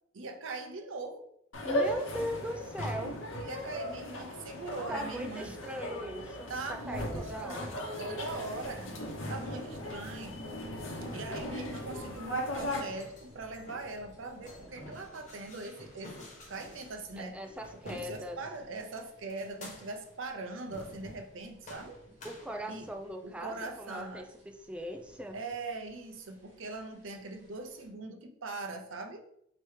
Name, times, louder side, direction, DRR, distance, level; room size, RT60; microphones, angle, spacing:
voice 1, 0.1-1.3 3.3-5.6 6.5-8.9 9.3-10.4 11.1-17.4 17.8-22.0 22.7-22.9 23.2-24.2 25.3-29.2, right 3 dB, 80° right, 5 dB, 0.6 m, -41 dB
sound 1, 1.5-12.8, equal, 85° left, 0.9 m, -37 dB
voice 2, 1.6-3.2 4.9-7.8 17.2-18.4 22.2-25.4, equal, 5° right, 4 dB, 0.3 m, -39 dB
sound 2, 8.1-27.9, equal, 40° right, 1.3 m, -57 dB
sound 3, 12.9-18.6 19.3-20.1 20.6-21.3 21.6-23.1, left 1 dB, 40° left, 1.0 m, -51 dB
4.5 x 2.9 x 3.2 m, 0.74 s
head